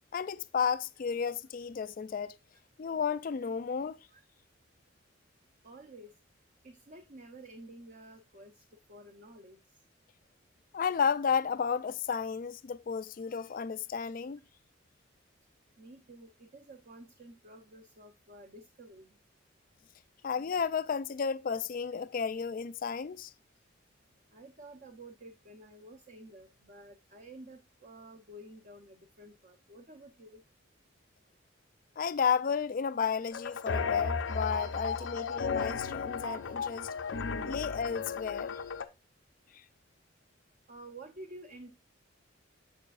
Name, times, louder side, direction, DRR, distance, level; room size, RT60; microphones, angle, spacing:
voice 1, 0.1-2.4 2.8-4.0 10.7-14.4 20.2-23.3 32.0-36.9 37.4-38.5, left 6 dB, 45° left, 0.4 m, -32 dB
voice 2, 5.6-6.1 6.6-8.6 8.9-9.6 15.8-19.1 24.3-30.4 40.7-41.7, right 1 dB, 45° right, 0.8 m, -51 dB
sound 1, 33.3-38.8, left 5 dB, 75° left, 0.7 m, -34 dB
7.2 x 6.7 x 2.4 m
head